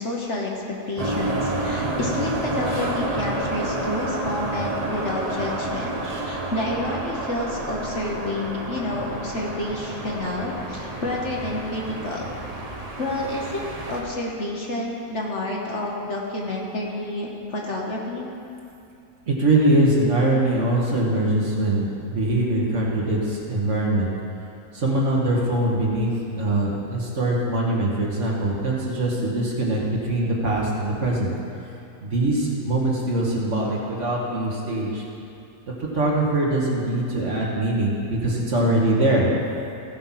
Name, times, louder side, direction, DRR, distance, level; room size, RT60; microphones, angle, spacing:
voice 1, 0.0-6.0 6.2-12.3 13.0-18.3, left 2 dB, 50° left, -2 dB, 1.3 m, -29 dB
sound 1, 1.0-14.0, right 2 dB, 30° right, 0.8 m, -29 dB
voice 2, 19.3-24.1 24.7-26.1 26.3-31.3 32.0-35.0 35.8-39.3, right 1 dB, 50° right, -3 dB, 1.8 m, -22 dB
15.5 x 5.4 x 5.7 m, 2.6 s
omnidirectional pair, 1.7 m